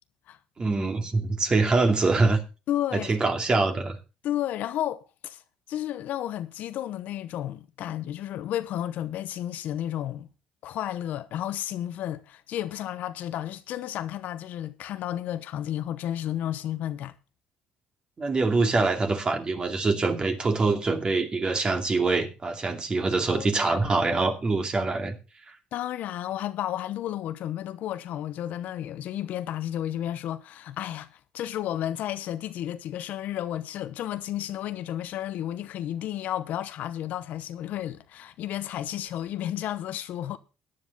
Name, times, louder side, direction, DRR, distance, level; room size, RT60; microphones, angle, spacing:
voice 1, 0.6-2.4 2.9-4.0 18.2-25.2, right 3 dB, 30° right, 2.5 m, -24 dB
voice 2, 2.7-3.4 4.2-5.4 5.7-10.3 10.6-17.1 23.3-23.9 25.7-40.4, left 12 dB, 70° left, 0.8 m, -32 dB
14.5 x 9.9 x 4.0 m
supercardioid pair, 80°, 3 cm